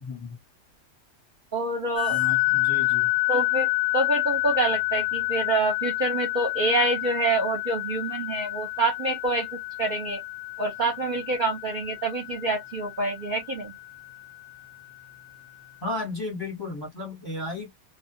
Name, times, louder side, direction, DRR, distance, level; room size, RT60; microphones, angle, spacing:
voice 1, 0.0-0.4 2.1-3.1 15.8-17.7, left 3 dB, 20° left, 0.8 m, -34 dB
voice 2, 1.5-2.2 3.3-9.5 9.8-10.2 10.6-13.7, right 2 dB, 45° right, 0.7 m, -26 dB
sound 1, 2.0-14.2, left 21 dB, 75° left, 0.4 m, -28 dB
2.3 x 2.2 x 2.7 m
omnidirectional pair, 1.5 m